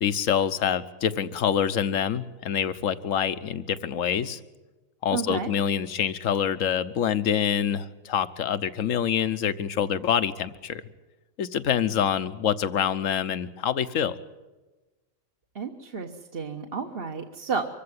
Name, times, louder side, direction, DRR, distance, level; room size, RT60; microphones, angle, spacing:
voice 1, 0.0-4.4 5.0-10.8 11.4-14.1, left 8 dB, 70° left, 13 dB, 1.3 m, -26 dB
voice 2, 5.1-5.5 15.5-17.7, right 5 dB, 45° right, 3 dB, 1.4 m, -31 dB
24.5 x 15.5 x 9.8 m, 1.1 s
omnidirectional pair, 1.4 m